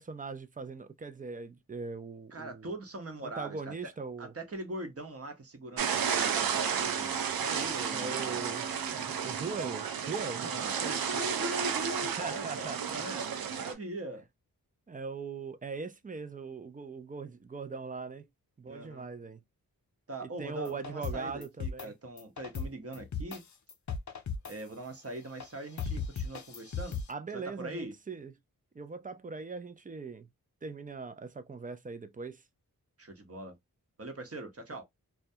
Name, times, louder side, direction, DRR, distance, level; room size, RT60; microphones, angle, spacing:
voice 1, 0.0-2.7 3.2-4.3 7.9-8.7 8.9-11.2 12.2-13.0 14.9-18.3 18.6-19.4 20.2-21.9 27.1-28.3 28.7-30.3 30.6-32.4, right 4 dB, 25° right, 0.4 m, -40 dB
voice 2, 2.3-3.9 4.2-8.4 10.3-14.2 18.7-19.2 20.1-23.4 24.5-27.0 27.3-27.9 33.0-33.6 34.0-34.8, right 1 dB, 40° right, 0.9 m, -41 dB
sound 1, 5.8-13.7, right 7 dB, 70° right, 0.6 m, -32 dB
sound 2, 20.7-21.9 22.2-23.4 23.7-24.6 25.4-25.5 25.8-27.1, left 5 dB, 50° left, 0.6 m, -36 dB
2.2 x 2.2 x 2.7 m
cardioid pair, 50°, 37 cm